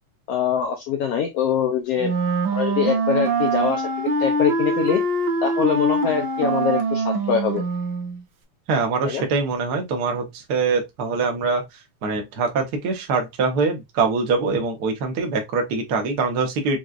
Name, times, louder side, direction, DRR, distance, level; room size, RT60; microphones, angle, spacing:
voice 1, 0.3-2.1 2.5-3.9 4.2-5.0 5.4-7.6 9.0-9.2, left 8 dB, 80° left, 1.4 m, -23 dB
Wind instrument woodwind instrument, 2.0-8.2, right 3 dB, 85° right, 1.1 m, -23 dB
voice 2, 8.7-11.6 12.0-16.8, right 4 dB, 65° right, 1.0 m, -23 dB
6.1 x 2.5 x 2.4 m
omnidirectional pair, 3.5 m